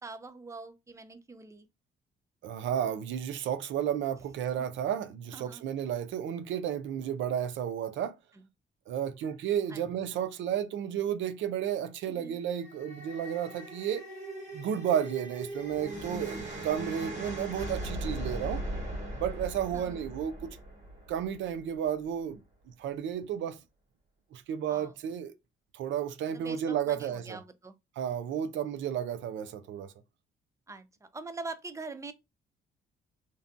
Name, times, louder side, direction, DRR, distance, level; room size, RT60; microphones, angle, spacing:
voice 1, 0.0-1.7 5.3-5.7 9.7-9.8 12.1-12.4 19.7-20.0 24.7-24.9 26.3-27.8 30.7-32.1, right 3 dB, 15° right, 0.4 m, -43 dB
voice 2, 2.4-8.1 8.9-14.0 14.5-18.6 19.1-20.6 21.1-22.4 22.8-23.6 24.3-25.3 25.7-27.4 28.0-29.9, right 9 dB, 70° right, 0.4 m, -32 dB
sound 1, 12.3-21.6, right 1 dB, 40° right, 1.5 m, -39 dB
2.6 x 2.1 x 2.6 m
cardioid pair, 90°, 20 cm